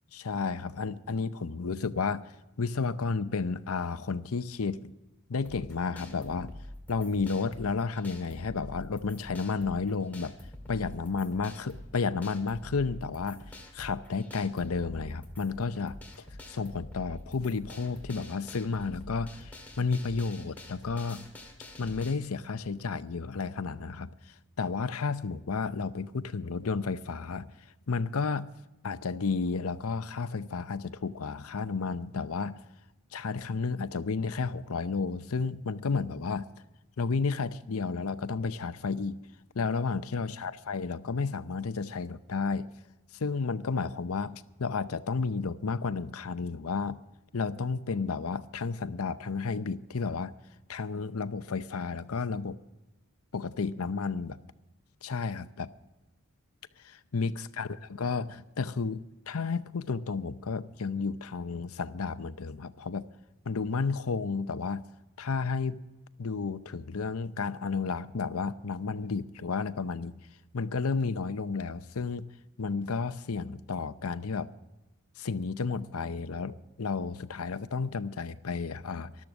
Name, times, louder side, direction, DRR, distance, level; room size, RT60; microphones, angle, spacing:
voice 1, 0.1-2.3 2.6-4.9 5.3-6.6 6.9-10.3 10.7-21.3 21.8-27.5 27.9-28.5 28.8-32.6 33.1-36.5 37.0-39.2 39.5-42.7 43.1-47.0 47.3-50.3 50.7-52.6 53.3-54.4 55.0-55.7 56.8-63.1 63.4-64.8 65.2-65.8 66.2-70.2 70.5-72.3 72.6-74.5 75.2-79.2, left 4 dB, 75° left, 0.7 m, -32 dB
sound 1, 5.4-22.1, left 1 dB, 10° left, 2.0 m, -47 dB
13.5 x 12.0 x 6.1 m
head